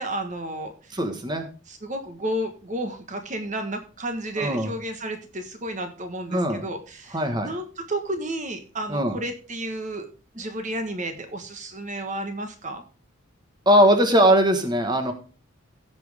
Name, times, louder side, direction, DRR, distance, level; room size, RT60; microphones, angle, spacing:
voice 1, 0.0-1.0 1.7-10.1 10.3-12.8, right 1 dB, 40° right, 6 dB, 1.4 m, -32 dB
voice 2, 0.9-1.5 4.4-4.7 6.3-6.6 7.1-7.5 8.9-9.2 13.6-15.1, equal, 20° right, 6 dB, 1.4 m, -20 dB
16.0 x 6.0 x 3.5 m, 0.36 s
head